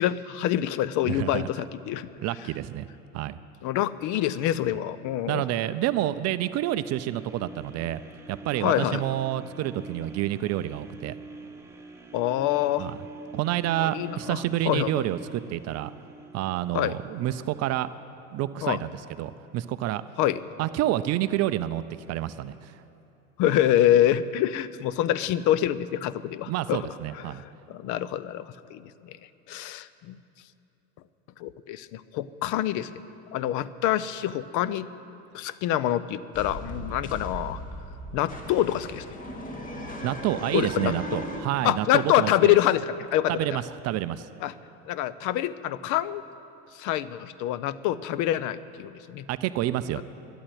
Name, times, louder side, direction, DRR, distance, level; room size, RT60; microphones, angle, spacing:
voice 1, 0.0-2.1 3.6-5.4 8.6-9.0 12.1-12.9 13.8-14.4 14.7-15.0 16.7-16.9 18.6-18.8 20.2-20.4 23.4-26.9 27.1-29.1 29.5-30.2 31.4-33.0 33.3-34.9 35.3-37.6 38.1-39.1 40.5-41.2 41.6-43.6 44.4-44.5 44.9-46.2 46.7-49.3, left 12 dB, 45° left, 16 dB, 0.6 m, -26 dB
voice 2, 1.1-1.5 2.2-2.9 3.1-3.4 5.3-8.0 8.3-11.1 12.8-13.0 13.3-15.9 16.3-17.9 18.3-18.9 19.2-20.0 20.6-21.8 22.1-22.7 26.5-27.4 40.0-42.6 43.3-44.3 49.3-50.0, right 13 dB, 35° right, 13 dB, 0.5 m, -28 dB
sound 1, 6.0-18.1 18.6-18.7, right 3 dB, 5° right, 1.5 m, -46 dB
sound 2, 36.3-41.4, equal, 15° left, 1.9 m, -37 dB
12.5 x 11.0 x 9.2 m, 2.9 s
hypercardioid pair, 85°, 45 cm